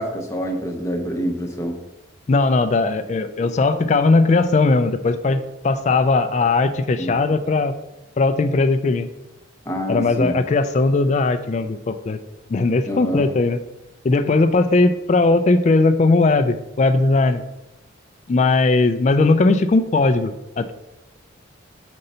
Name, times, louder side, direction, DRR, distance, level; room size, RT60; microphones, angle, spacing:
voice 1, 0.0-1.8 7.0-7.1 9.7-10.3 12.9-13.2, equal, 15° left, 1 dB, 0.8 m, -26 dB
voice 2, 2.3-7.7 8.2-9.1 9.9-12.2 12.5-13.6 14.0-17.4 18.3-20.7, left 3 dB, 35° left, 10 dB, 0.3 m, -18 dB
5.3 x 3.9 x 5.5 m, 0.94 s
head